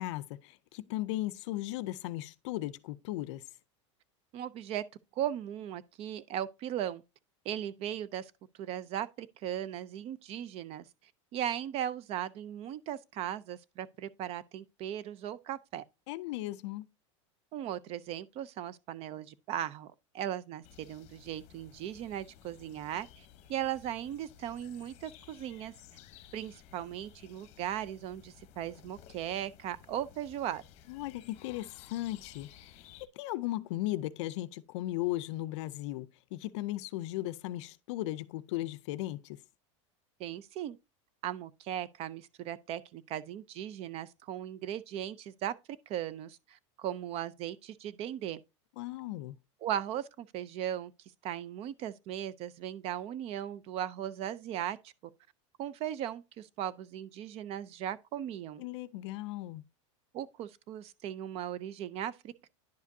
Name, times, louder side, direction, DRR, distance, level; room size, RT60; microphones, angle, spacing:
voice 1, 0.0-3.4 16.1-16.9 30.9-32.5 32.8-32.9 33.2-39.4 48.8-49.4 58.6-59.6, left 16 dB, 65° left, 0.5 m, -36 dB
voice 2, 4.3-4.8 5.2-7.0 7.5-8.3 8.6-10.9 11.3-15.8 17.5-25.7 26.3-30.6 40.2-40.8 41.2-45.5 45.9-48.4 49.6-50.9 51.2-54.9 55.6-58.6 60.1-62.5, right 11 dB, 40° right, 0.5 m, -38 dB
sound 1, 20.6-33.1, left 10 dB, 45° left, 0.9 m, -56 dB
10.5 x 5.0 x 2.7 m
supercardioid pair, 135°, 16 cm